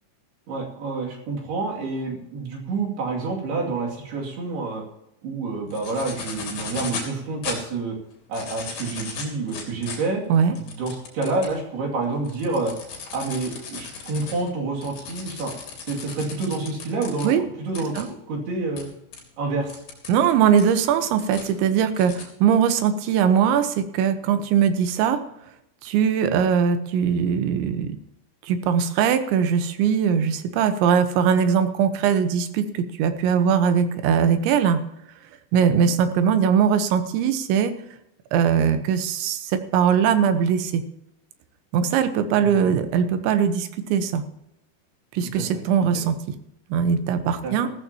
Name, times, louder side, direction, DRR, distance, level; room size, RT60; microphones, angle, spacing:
voice 1, 0.5-4.8 5.2-8.0 8.3-10.2 10.6-12.7 13.1-15.5 15.9-18.9 19.4-19.7 42.4-42.5 45.3-45.4 47.4-47.5, right 3 dB, 60° right, -2 dB, 4.3 m, -28 dB
sound 1, 5.7-7.1 7.4-7.6 8.2-11.6 12.0-17.3 17.7-18.0 18.8-18.9 19.1-19.2 19.7-20.1 20.6-21.5 21.9-22.2, left 5 dB, 60° left, 5.0 m, -36 dB
voice 2, 20.1-25.2 25.8-28.0 28.4-34.8 35.5-37.7 38.3-40.8 41.7-44.2 45.1-46.4 46.7-47.7, right 7 dB, 75° right, 9 dB, 3.3 m, -21 dB
16.0 x 14.5 x 2.9 m, 0.82 s
omnidirectional pair, 5.5 m